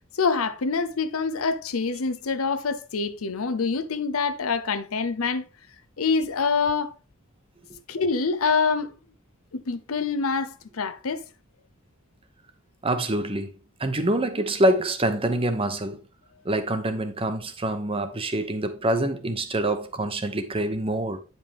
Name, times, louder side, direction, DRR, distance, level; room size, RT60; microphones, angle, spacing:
voice 1, 0.1-5.4 6.0-6.9 7.9-8.9 9.5-11.2, left 4 dB, 75° left, 0.7 m, -26 dB
voice 2, 12.8-13.5 13.8-16.0 16.4-21.2, right 1 dB, 25° right, 0.8 m, -25 dB
9.5 x 5.3 x 3.5 m
head